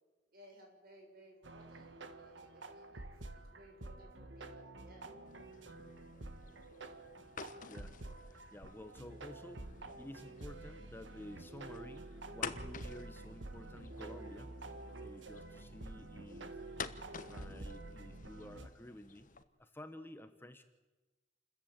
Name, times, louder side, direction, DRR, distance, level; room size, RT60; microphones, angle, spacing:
voice 1, 0.3-5.1, right 1 dB, 55° right, 2 dB, 6.9 m, -60 dB
sound 1, 1.4-18.7, right 2 dB, 75° right, 1.6 m, -49 dB
sound 2, 5.3-19.4, left 5 dB, 45° left, 1.1 m, -51 dB
voice 2, 8.2-9.7 10.0-14.5 15.0-16.6 17.2-19.3 19.6-20.6, left 1 dB, 10° left, 8 dB, 1.0 m, -52 dB
28.5 x 14.5 x 8.9 m, 1.2 s
head